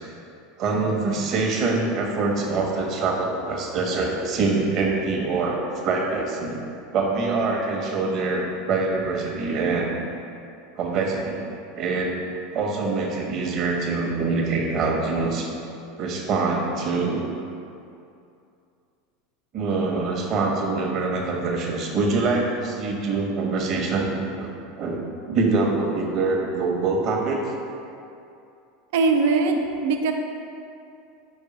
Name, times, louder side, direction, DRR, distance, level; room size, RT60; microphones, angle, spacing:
voice 1, 0.6-6.6 6.9-9.9 10.8-11.5 11.7-12.1 12.5-15.5 16.0-17.2 19.5-24.1 24.4-24.5 24.8-27.4, right 3 dB, 45° right, -1 dB, 1.3 m, -24 dB
voice 2, 28.9-30.1, right 4 dB, 65° right, 4 dB, 0.7 m, -21 dB
5.5 x 5.2 x 5.2 m, 2.6 s
figure-of-eight pair, 80°, 0 cm